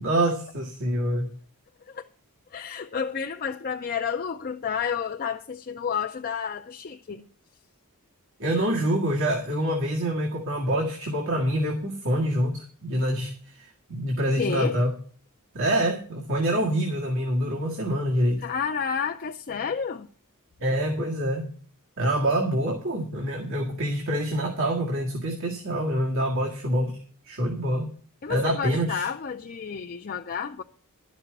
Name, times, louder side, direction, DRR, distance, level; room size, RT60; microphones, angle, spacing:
voice 1, 0.0-1.3 8.4-14.9 15.5-18.4 20.6-21.5 22.0-27.0 27.3-27.9 28.3-29.1, right 1 dB, 60° right, 1.9 m, -26 dB
voice 2, 2.5-7.3 14.4-14.8 18.4-20.1 28.2-30.6, left 6 dB, 40° left, 0.5 m, -30 dB
12.0 x 6.1 x 7.9 m
head